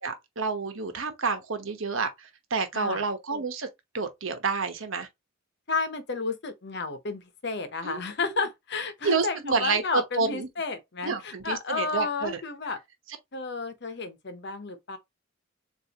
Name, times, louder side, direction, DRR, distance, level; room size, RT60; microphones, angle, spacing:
voice 1, 0.0-3.7 3.9-5.1 7.8-8.0 9.0-10.5 11.0-12.4, right 4 dB, 90° right, 1.1 m, -29 dB
voice 2, 5.7-12.8 13.3-15.0, left 4 dB, 60° left, 0.9 m, -32 dB
6.9 x 2.7 x 2.9 m
head